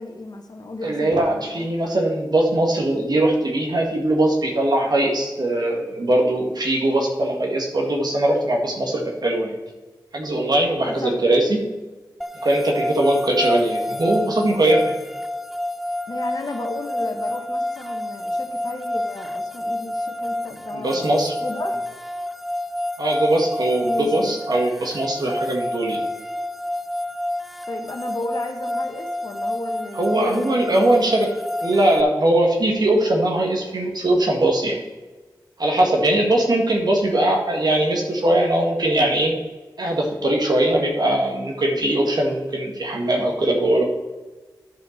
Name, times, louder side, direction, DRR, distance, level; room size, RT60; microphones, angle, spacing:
voice 1, 0.0-1.9 10.8-11.3 16.1-21.1 21.4-22.0 23.8-24.3 27.7-31.1 31.7-31.8, left 2 dB, 60° left, 4 dB, 1.2 m, -34 dB
voice 2, 0.8-9.6 10.1-11.6 12.4-15.0 20.7-21.3 23.0-26.0 29.9-31.3 31.6-34.8 35.6-39.3 39.8-43.8, right 1 dB, 60° right, 1 dB, 1.8 m, -20 dB
sound 1, 12.2-32.0, left 1 dB, ahead, 0.4 m, -28 dB
11.0 x 5.3 x 4.5 m, 1.2 s
cardioid pair, 45°, 8 cm